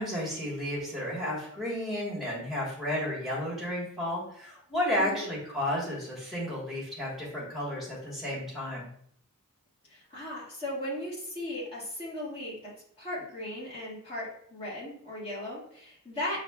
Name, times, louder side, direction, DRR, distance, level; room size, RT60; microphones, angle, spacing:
voice 1, 0.0-8.9, left 1 dB, ahead, -6 dB, 1.3 m, -32 dB
voice 2, 5.0-5.3 9.9-16.4, left 1 dB, 25° left, -7 dB, 1.6 m, -37 dB
6.3 x 2.7 x 2.2 m, 0.64 s
head